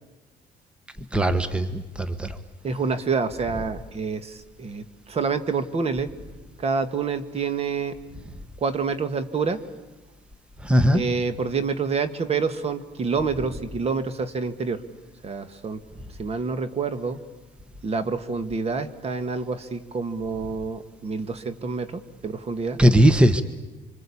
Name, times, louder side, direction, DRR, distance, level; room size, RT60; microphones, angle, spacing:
voice 1, 1.1-2.3 10.6-11.0 22.8-23.4, equal, 5° right, 11 dB, 1.3 m, -19 dB
voice 2, 2.6-6.1 6.6-7.9 8.6-9.6 10.9-14.8 15.2-15.8 16.2-17.2 17.8-22.8, right 5 dB, 35° right, 11 dB, 1.7 m, -27 dB
26.0 x 25.0 x 8.6 m, 1.1 s
cardioid pair, 110°, 17 cm